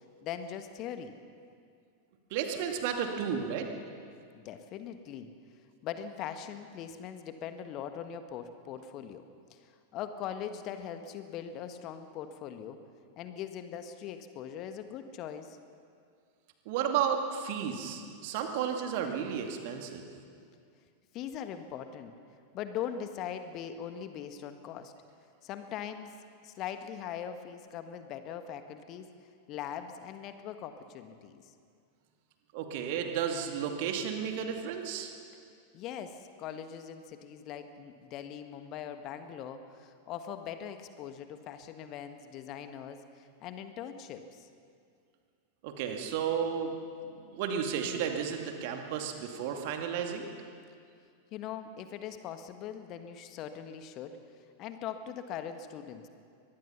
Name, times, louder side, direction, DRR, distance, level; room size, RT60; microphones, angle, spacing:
voice 1, 0.2-1.2 4.3-5.3 5.8-9.2 9.5-12.8 13.2-15.6 21.1-22.1 22.5-24.9 25.4-26.1 26.4-29.1 29.5-31.5 35.7-44.5 51.3-54.2 54.6-56.1, left 9 dB, 35° left, 9 dB, 1.4 m, -41 dB
voice 2, 2.3-3.7 16.7-20.0 32.5-35.1 45.6-46.7 47.3-50.3, right 7 dB, 50° right, 4 dB, 2.3 m, -33 dB
23.5 x 20.0 x 5.8 m, 2.2 s
figure-of-eight pair, 90°, 0 cm